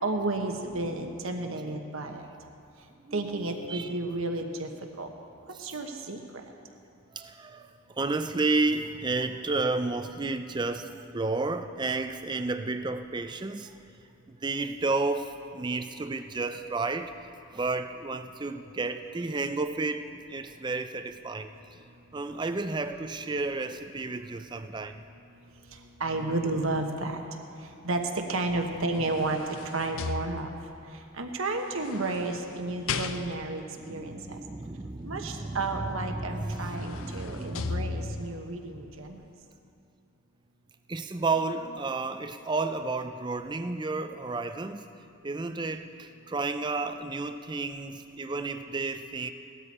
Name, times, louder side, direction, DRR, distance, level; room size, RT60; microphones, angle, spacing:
voice 1, 0.0-2.3 3.1-4.7 5.0-5.1 5.5-6.4 25.7-27.2 27.6-30.6 30.9-34.4 35.0-39.3, right 2 dB, 65° right, 4 dB, 1.2 m, -32 dB
voice 2, 3.0-4.0 5.5-5.7 7.1-13.7 14.3-17.1 17.5-21.5 22.1-25.0 33.8-38.3 40.9-44.8 45.2-49.3, right 3 dB, 20° right, 9 dB, 0.4 m, -32 dB
sound 1, 28.6-30.8 31.7-33.7 35.9-36.0 36.4-38.4 38.9-39.1, left 5 dB, 65° left, 0.6 m, -37 dB
17.5 x 12.5 x 4.3 m, 2.6 s
head